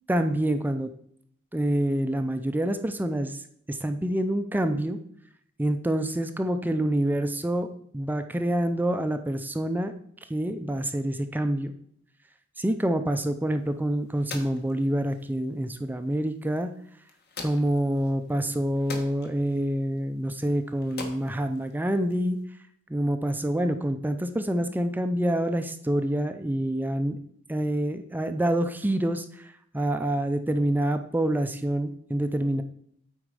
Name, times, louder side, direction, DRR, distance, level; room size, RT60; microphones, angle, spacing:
voice 1, 0.1-0.9 1.5-3.4 3.7-5.0 5.6-7.7 7.9-9.9 10.3-11.7 12.6-16.7 17.4-22.4 22.9-27.2 27.5-29.5 29.7-32.6, right 1 dB, 10° right, 8 dB, 0.4 m, -27 dB
sound 1, 13.5-22.5, left 3 dB, 50° left, 1.3 m, -46 dB
8.8 x 4.4 x 4.8 m, 0.68 s
head